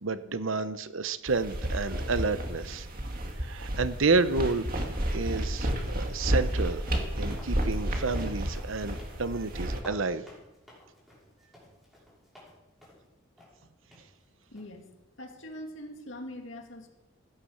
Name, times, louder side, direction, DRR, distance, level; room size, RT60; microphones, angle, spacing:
voice 1, 0.0-2.9 3.4-4.7 5.1-6.8 7.2-10.3, right 3 dB, 75° right, 13 dB, 0.9 m, -30 dB
sound 1, 1.3-9.8, right 1 dB, 45° right, 2.1 m, -31 dB
sound 2, 6.6-12.5 12.8-13.1 13.4-13.5 13.9-14.0 14.6-14.8, left 1 dB, ahead, 6.1 m, -53 dB
voice 2, 14.5-14.9 15.2-16.9, left 1 dB, 70° left, 3 dB, 2.4 m, -42 dB
16.0 x 10.0 x 6.6 m, 0.97 s
head